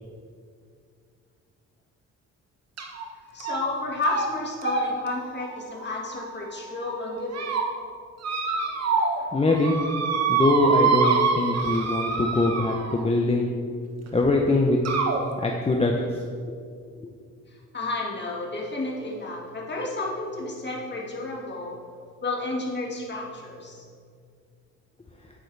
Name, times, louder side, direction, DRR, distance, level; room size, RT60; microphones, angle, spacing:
sound 1, 2.8-3.0 3.4-3.8 4.0-4.3 4.6-6.5 7.1-7.6 8.2-9.2 9.5-13.1 14.1-14.2 14.9-15.2, right 5 dB, 55° right, 1.3 m, -26 dB
voice 1, 3.3-7.4 9.2-9.3 17.7-21.8 22.2-23.9, left 2 dB, 35° left, -2 dB, 2.1 m, -31 dB
voice 2, 9.3-9.8 10.3-13.5 14.1-14.8 15.4-16.2, left 2 dB, 20° left, 0 dB, 0.8 m, -22 dB
9.1 x 8.9 x 3.4 m, 2.2 s
cardioid pair, 90°, 30 cm